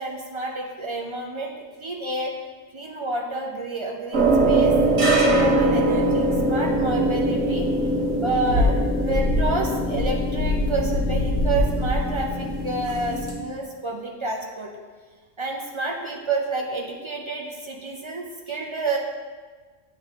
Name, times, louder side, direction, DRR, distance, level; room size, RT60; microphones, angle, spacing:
voice 1, 0.0-1.5 1.8-2.3 2.7-7.7 8.2-14.7 15.4-19.0, right 2 dB, 50° right, 0 dB, 0.3 m, -29 dB
sound 1, 4.1-13.3, right 1 dB, 80° right, 1.6 m, -21 dB
8.2 x 3.8 x 3.5 m, 1.4 s
omnidirectional pair, 1.3 m